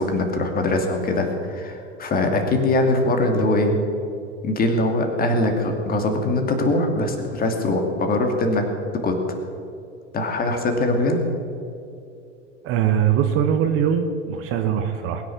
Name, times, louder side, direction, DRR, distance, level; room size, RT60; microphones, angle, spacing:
voice 1, 0.0-3.8 4.4-8.7 9.0-9.2 10.1-11.2, left 2 dB, 25° left, 4 dB, 2.6 m, -22 dB
voice 2, 12.6-15.2, right 9 dB, 35° right, 7 dB, 1.2 m, -21 dB
21.0 x 10.0 x 5.9 m, 2.6 s
figure-of-eight pair, 90°, 36 cm